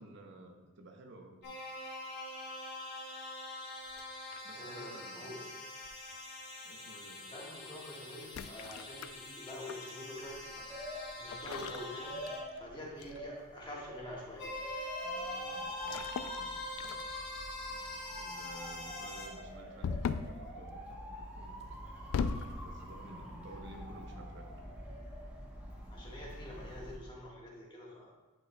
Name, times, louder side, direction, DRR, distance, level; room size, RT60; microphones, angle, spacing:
voice 1, 0.0-1.4 4.4-5.3 6.6-7.3 15.0-17.1 18.2-21.6 22.5-24.6, right 2 dB, 60° right, 3 dB, 0.7 m, -53 dB
sound 1, 1.4-12.4 14.4-19.3, left 2 dB, 55° left, 1.1 m, -44 dB
sound 2, 3.9-4.6 5.8-6.2 8.2-9.9 11.3-12.7 13.0-13.3 15.8-16.4 16.8-17.3 19.8-20.4 21.6-22.6, left 6 dB, 80° left, 0.3 m, -38 dB
voice 2, 4.5-5.5 7.3-10.6 11.2-12.2 12.5-14.5 25.9-28.1, left 1 dB, 25° left, -4 dB, 1.4 m, -46 dB
Motor vehicle (road) / Siren, 10.1-27.0, equal, 5° right, 0.9 m, -47 dB
8.9 x 5.5 x 2.2 m, 1.1 s
head